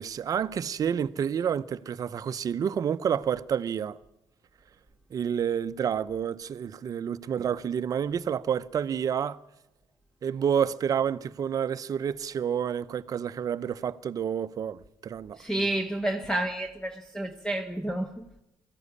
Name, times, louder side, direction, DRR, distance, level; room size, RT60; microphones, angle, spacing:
voice 1, 0.0-4.0 5.1-9.4 10.2-15.7, right 8 dB, 45° right, 0.8 m, -29 dB
voice 2, 15.4-18.4, right 1 dB, 5° left, 1.3 m, -30 dB
21.0 x 14.5 x 9.8 m
cardioid pair, 100°, 8 cm